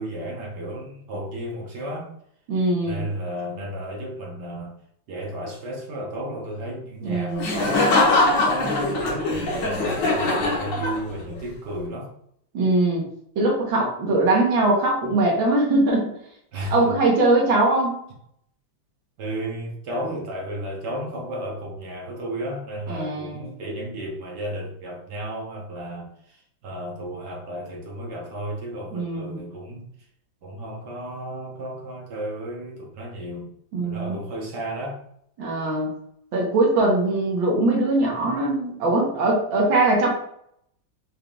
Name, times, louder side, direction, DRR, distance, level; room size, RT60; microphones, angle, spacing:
voice 1, 0.0-2.1 2.8-4.7 5.1-8.1 8.4-12.1 16.5-16.8 19.2-29.9 30.4-33.5 33.8-35.0, right 1 dB, 65° right, -2 dB, 1.6 m, -33 dB
voice 2, 2.5-3.1 7.0-7.5 12.5-13.1 13.4-16.1 16.7-18.0 22.9-23.5 28.9-29.4 33.7-34.2 35.4-36.0 36.3-40.1, right 2 dB, 80° right, -2 dB, 1.8 m, -21 dB
Laughter, 7.4-11.3, left 2 dB, 65° left, 1.8 m, -22 dB
6.3 x 3.6 x 2.3 m, 0.70 s
omnidirectional pair, 2.1 m